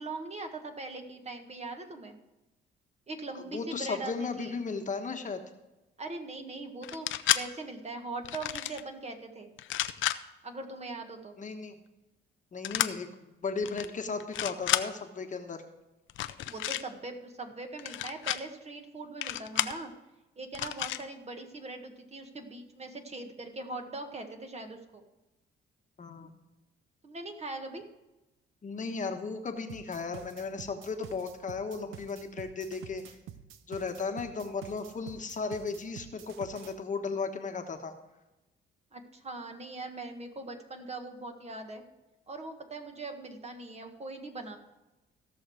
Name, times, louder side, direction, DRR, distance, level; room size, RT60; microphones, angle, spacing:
voice 1, 0.0-2.2 3.1-4.6 6.0-9.5 10.4-11.4 16.4-19.9 20.4-25.0 27.0-27.9 34.9-35.2 38.9-41.8 42.3-44.6, right 2 dB, 35° right, 5 dB, 1.7 m, -41 dB
voice 2, 3.3-5.4 11.4-11.7 12.5-15.6 26.0-26.3 28.6-33.1 33.7-37.9, left 4 dB, 40° left, 5 dB, 1.2 m, -35 dB
sound 1, 6.8-7.4 8.2-8.8 9.6-10.2 12.6-12.9 13.6-13.9 14.2-14.8 16.1-16.8 17.8-18.4 19.2-19.8 20.5-21.0, left 13 dB, 75° left, 0.6 m, -30 dB
sound 2, 29.7-36.8, right 10 dB, 90° right, 0.8 m, -48 dB
16.0 x 6.4 x 4.8 m, 1.0 s
cardioid pair, 90°, 20 cm